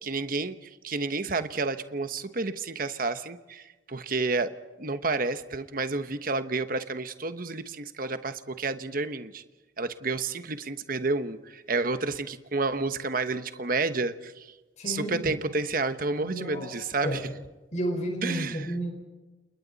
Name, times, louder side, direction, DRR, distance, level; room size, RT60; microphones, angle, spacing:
voice 1, 0.0-4.5 4.8-9.4 9.8-14.5 14.9-17.2 18.2-18.6, right 3 dB, 45° right, 10 dB, 1.2 m, -30 dB
voice 2, 14.8-15.3 16.2-16.7 17.0-17.2 17.7-18.9, right 1 dB, 35° left, 3 dB, 4.8 m, -31 dB
29.5 x 28.5 x 4.2 m, 1.2 s
head